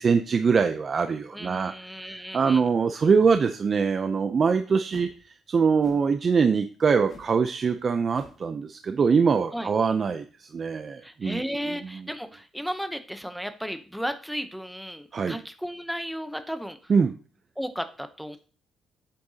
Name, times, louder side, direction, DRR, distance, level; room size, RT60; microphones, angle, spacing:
voice 1, 0.0-1.7 2.0-5.1 5.5-12.0 15.1-15.4 16.9-17.1, right 5 dB, 35° right, 8 dB, 0.5 m, -23 dB
voice 2, 1.3-2.6 9.5-9.7 11.0-16.8 17.6-18.4, equal, ahead, 8 dB, 0.7 m, -34 dB
sound 1, 4.9-5.2 5.8-6.2 7.1-7.4 7.7-7.8 8.1-8.5, left 4 dB, 40° left, 1.5 m, -49 dB
8.5 x 7.8 x 2.8 m, 0.38 s
cardioid pair, 145°, 0 cm